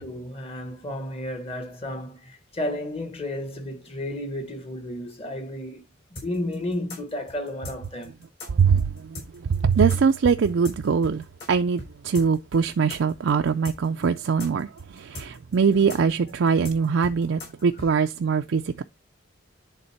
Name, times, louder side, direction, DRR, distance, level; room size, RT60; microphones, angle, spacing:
voice 1, 0.0-5.8 6.2-8.1, left 1 dB, 30° left, 1.3 m, -32 dB
sound 1, 6.2-11.5 11.8-11.9 12.1-17.9, left 2 dB, 55° left, 4.1 m, -39 dB
voice 2, 8.4-18.8, right 6 dB, 65° right, 0.4 m, -22 dB
10.5 x 3.6 x 4.4 m
head